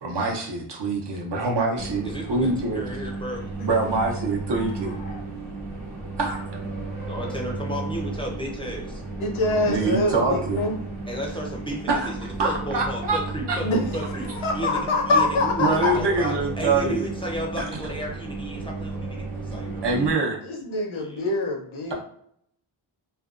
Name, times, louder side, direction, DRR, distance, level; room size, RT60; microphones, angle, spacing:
voice 1, 0.0-2.8 3.6-4.9 6.2-6.4 9.7-10.6 11.9-12.1 12.4-13.2 13.5-13.6 15.6-17.1 17.6-17.7 19.8-20.4, right 3 dB, 60° right, 0 dB, 0.7 m, -24 dB
sound 1, 1.7-20.1, right 3 dB, 80° right, 1.0 m, -34 dB
voice 2, 2.0-3.4 7.1-9.0 11.1-14.8 15.1-19.9 20.9-21.3, equal, 10° left, -1 dB, 0.5 m, -33 dB
voice 3, 9.2-10.8 13.6-13.8 14.4-16.0 20.4-21.9, left 2 dB, 75° left, 1 dB, 0.7 m, -24 dB
2.5 x 2.2 x 2.4 m, 0.67 s
wide cardioid pair, 95°, 48 cm